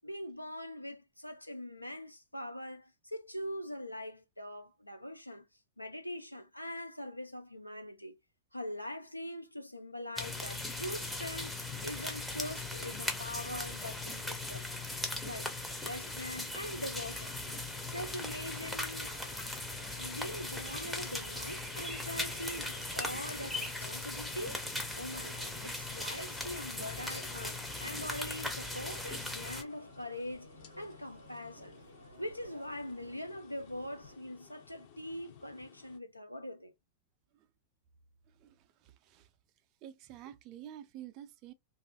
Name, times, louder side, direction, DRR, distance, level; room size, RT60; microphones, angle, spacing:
voice 1, 0.0-5.5 5.8-8.2 8.5-11.5 11.8-14.7 15.2-15.5 15.8-17.3 17.9-19.1 20.0-24.6 25.0-30.5 30.8-31.8 32.2-36.7, left 1 dB, 90° left, 0.4 m, -42 dB
sound 1, 10.2-29.6, left 2 dB, 5° left, 0.6 m, -39 dB
sound 2, 17.4-34.2, right 2 dB, 85° right, 0.5 m, -56 dB
sound 3, 25.3-36.0, left 8 dB, 50° left, 0.7 m, -58 dB
voice 2, 38.4-39.3 39.8-41.5, right 11 dB, 40° right, 0.4 m, -49 dB
2.5 x 2.4 x 2.2 m
figure-of-eight pair, 90°, 0 cm